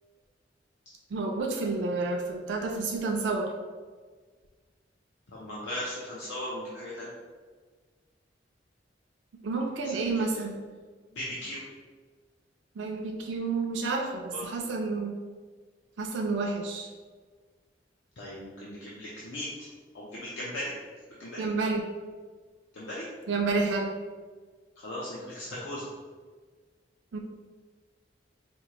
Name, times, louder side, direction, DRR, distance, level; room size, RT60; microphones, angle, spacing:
voice 1, 1.1-3.5 9.4-10.6 12.8-15.2 16.0-16.9 21.4-21.8 23.3-23.9 27.1-27.2, right 3 dB, 80° right, 1 dB, 0.4 m, -30 dB
voice 2, 5.3-7.1 9.9-10.1 11.1-11.6 14.3-14.4 18.2-19.7 19.9-20.7 21.2-21.5 22.7-23.1 24.8-25.8, left 1 dB, 90° left, -7 dB, 0.7 m, -37 dB
4.3 x 2.4 x 2.9 m, 1.5 s
head